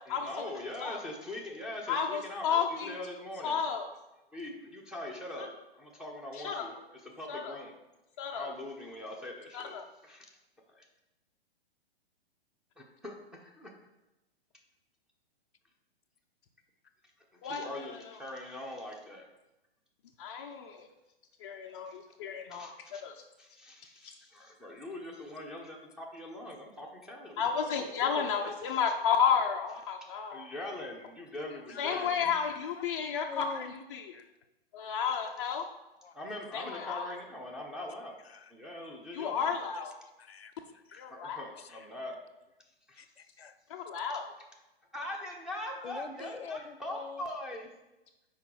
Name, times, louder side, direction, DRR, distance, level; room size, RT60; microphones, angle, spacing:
voice 1, 0.1-3.6 4.3-5.5 5.7-6.7 7.0-7.7 8.3-9.8 10.0-10.3 12.8-13.7 17.4-19.3 22.5-23.0 23.4-27.4 27.8-28.8 30.3-32.3 36.1-38.2 38.5-39.5 41.1-42.2 42.9-43.1 44.9-47.7, left 1 dB, ahead, -1 dB, 0.7 m, -42 dB
voice 2, 1.9-3.0 3.4-3.9 5.4-5.5 6.4-6.8 7.3-7.6 8.2-8.5 9.5-9.8 17.4-18.0 20.2-20.9 21.4-22.7 23.0-23.2 27.4-30.5 31.8-34.1 34.7-35.6 36.5-37.1 39.1-40.0 41.0-41.4 43.7-44.3, left 6 dB, 30° left, 0 dB, 0.4 m, -32 dB
voice 3, 31.5-32.1 32.8-32.9 33.3-33.7 34.1-34.3 36.0-36.2 38.3-38.5 39.8-39.9 40.2-41.1 41.6-41.9 43.0-43.6 45.8-47.2, left 5 dB, 75° left, 11 dB, 0.6 m, -46 dB
5.8 x 4.7 x 4.7 m, 0.99 s
figure-of-eight pair, 115°, 31 cm